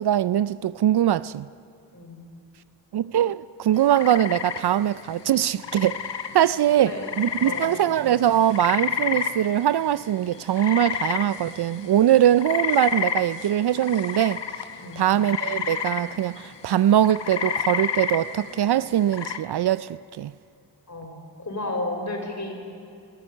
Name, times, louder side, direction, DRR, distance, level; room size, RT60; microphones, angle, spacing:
voice 1, 0.0-1.5 2.9-6.0 6.3-14.4 15.0-19.9 20.2-20.3, right 11 dB, 65° right, 0.5 m, -22 dB
sound 1, 3.8-19.4, left 7 dB, 70° left, 1.2 m, -31 dB
voice 2, 6.8-7.7 14.8-15.0 20.9-22.5, left 2 dB, 40° left, 4.9 m, -33 dB
20.5 x 13.5 x 9.8 m
cardioid pair, 50°, 44 cm